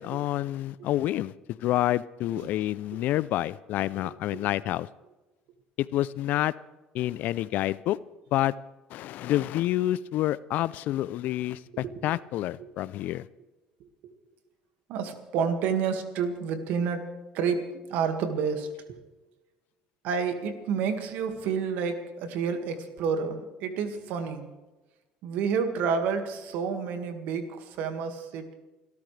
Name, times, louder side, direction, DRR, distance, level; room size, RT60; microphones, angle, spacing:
voice 1, 0.0-4.9 5.8-6.5 6.9-8.0 8.3-8.5 8.9-13.3, left 14 dB, 65° left, 19 dB, 0.5 m, -28 dB
voice 2, 4.0-4.4 11.7-11.9 12.6-12.7 13.8-13.9 14.9-19.0 20.0-24.5 25.2-28.5, right 6 dB, 70° right, 7 dB, 1.9 m, -30 dB
29.0 x 13.0 x 3.3 m, 1.1 s
supercardioid pair, 80°, 3 cm